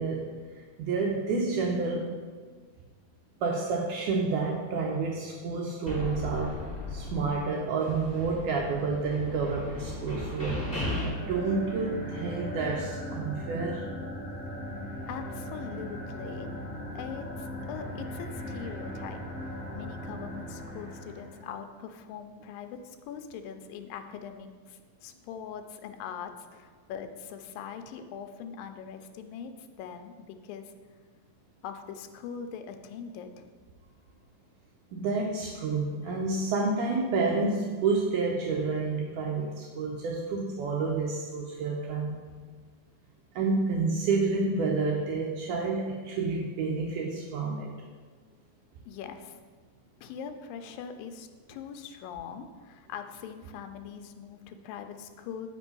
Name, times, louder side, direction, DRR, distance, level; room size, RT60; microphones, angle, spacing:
voice 1, 0.0-2.1 3.4-6.6 6.9-10.7 11.3-13.9 34.9-42.2 43.4-47.7, right 4 dB, 75° right, -1 dB, 2.0 m, -29 dB
sound 1, 5.9-7.5 7.8-11.0, left 1 dB, 5° left, 1.4 m, -36 dB
sound 2, 11.0-21.5, equal, 40° left, 1.2 m, -38 dB
voice 2, 15.1-16.5 17.0-29.5 29.8-30.7 31.6-33.5 36.1-36.2 48.9-49.4 50.0-55.5, left 7 dB, 85° left, 7 dB, 2.4 m, -42 dB
8.5 x 5.3 x 5.3 m, 1.5 s
omnidirectional pair, 4.0 m